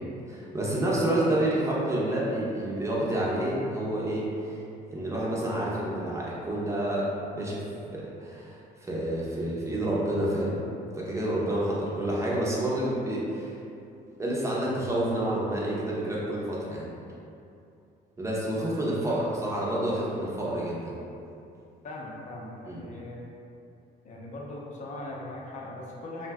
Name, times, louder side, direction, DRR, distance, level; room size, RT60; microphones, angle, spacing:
voice 1, 0.0-4.3 4.9-7.6 7.9-10.6 10.9-13.6 14.2-16.9 18.2-20.9 22.7-22.8, right 1 dB, 15° right, -6 dB, 0.5 m, -29 dB
voice 2, 21.8-23.2 24.0-26.3, left 2 dB, 45° left, -3 dB, 0.6 m, -40 dB
2.5 x 2.1 x 3.4 m, 2.6 s
cardioid pair, 110°, 17 cm